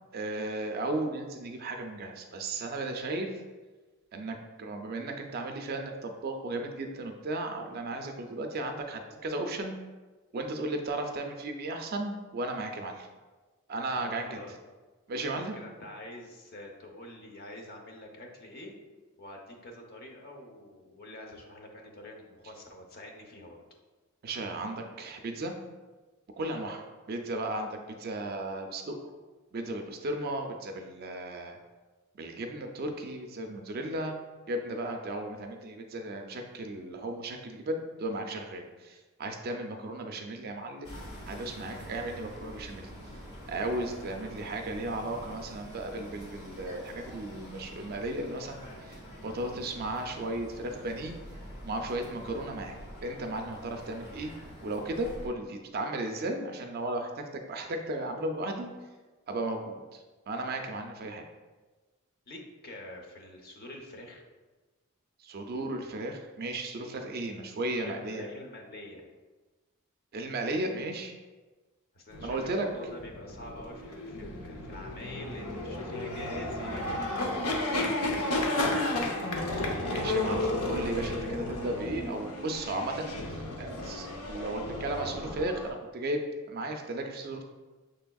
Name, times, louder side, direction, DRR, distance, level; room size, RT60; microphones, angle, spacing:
voice 1, 0.1-3.4 4.1-9.8 10.3-13.1 13.7-14.4 15.1-15.6 24.2-25.5 26.4-29.0 29.5-31.6 32.1-34.2 34.5-40.9 41.3-42.8 43.5-51.2 51.6-52.8 53.0-54.3 54.6-58.7 59.3-61.2 65.2-68.3 70.1-71.1 72.2-72.7 79.9-87.4, right 2 dB, 45° right, 4 dB, 0.4 m, -35 dB
voice 2, 13.9-14.5 15.2-18.7 19.2-23.6 62.3-64.2 66.9-67.1 67.6-69.0 71.9-79.1, left 1 dB, 45° left, 2 dB, 0.7 m, -46 dB
sound 1, 40.8-55.3, equal, 25° left, 1.0 m, -46 dB
sound 2, 72.1-85.7, left 2 dB, 80° left, 0.7 m, -33 dB
6.3 x 3.4 x 2.3 m, 1.3 s
head